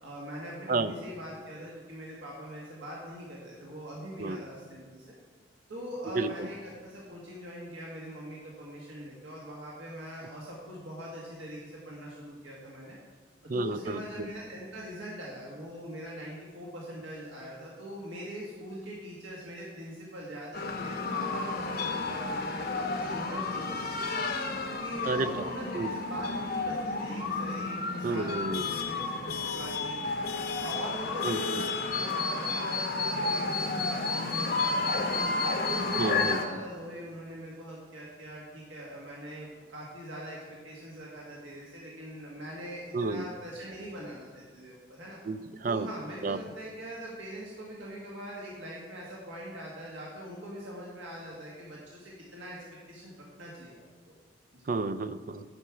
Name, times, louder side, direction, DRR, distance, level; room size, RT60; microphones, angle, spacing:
voice 1, 0.0-5.1 5.7-12.9 13.4-24.0 24.7-30.2 30.6-35.2 35.6-45.2 45.6-52.6 52.9-53.8 54.5-54.7, equal, 75° right, -4 dB, 1.5 m, -42 dB
voice 2, 6.1-6.5 13.5-14.3 25.1-25.4 25.7-25.9 28.0-28.7 31.2-31.4 36.0-36.4 42.9-43.2 45.3-45.9 46.2-46.4 54.7-55.4, right 3 dB, 45° right, 13 dB, 0.4 m, -31 dB
sound 1, 20.5-36.5, left 3 dB, 50° left, 0.8 m, -31 dB
11.0 x 5.9 x 4.9 m, 1.6 s
head